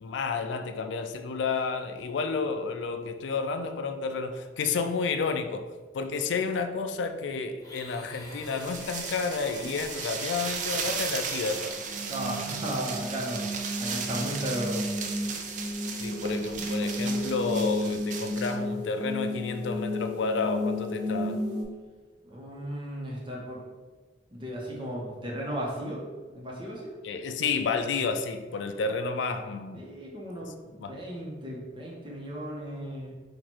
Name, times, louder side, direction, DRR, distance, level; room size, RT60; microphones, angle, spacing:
voice 1, 0.0-5.7 5.9-11.8 16.0-21.4 27.0-29.9 30.8-31.0, left 4 dB, 75° left, 7 dB, 0.4 m, -31 dB
Domestic sounds home sounds, 7.6-12.0, left 2 dB, 20° left, 0.7 m, -47 dB
sound 1, 8.5-18.6, right 5 dB, 40° right, 0.5 m, -36 dB
sound 2, 11.8-21.6, left 1 dB, 85° right, 1.3 m, -33 dB
voice 2, 12.1-13.4 13.8-14.9 22.2-23.6 24.3-26.0 26.3-26.9 29.7-33.1, equal, 25° right, -3 dB, 0.9 m, -35 dB
4.3 x 2.5 x 4.4 m, 1.3 s
head